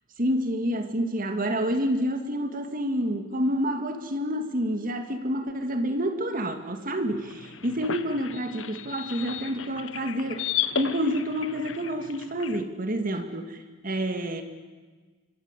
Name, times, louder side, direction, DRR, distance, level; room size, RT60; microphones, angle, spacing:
voice 1, 0.2-10.5 10.8-14.4, equal, 45° right, 7 dB, 2.2 m, -28 dB
sound 1, 7.1-12.6, left 9 dB, 75° left, 1.4 m, -34 dB
26.5 x 24.5 x 8.3 m, 1.4 s
head